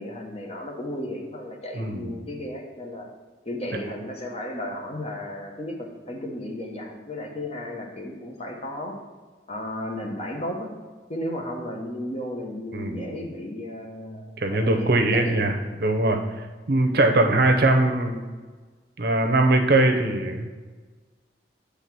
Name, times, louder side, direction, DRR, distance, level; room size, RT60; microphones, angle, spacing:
voice 1, 0.0-3.1 3.4-9.0 9.5-10.7 11.1-15.5, left 1 dB, 35° left, 1 dB, 1.0 m, -34 dB
voice 2, 1.8-2.1 12.7-13.1 14.4-15.5 15.8-16.2 16.7-18.2 19.0-20.5, right 2 dB, 60° right, 4 dB, 0.7 m, -21 dB
6.9 x 3.5 x 5.9 m, 1.4 s
head